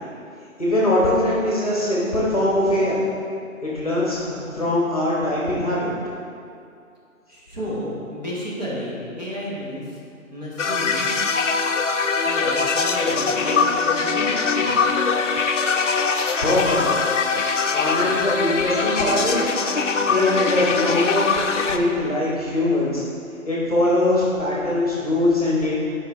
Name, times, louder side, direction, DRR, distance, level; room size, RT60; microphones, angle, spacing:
voice 1, 0.6-3.1 3.6-5.9 16.4-17.0 17.7-19.5 20.1-21.2 21.7-23.0 23.4-25.7, left 1 dB, 25° left, -6 dB, 1.2 m, -22 dB
voice 2, 7.3-9.8 10.3-11.1 12.2-14.8, equal, 30° right, -8 dB, 1.4 m, -32 dB
sound 1, 10.6-21.8, left 4 dB, 60° left, 0.6 m, -22 dB
9.7 x 5.0 x 3.6 m, 2.4 s
figure-of-eight pair, 175°, 42 cm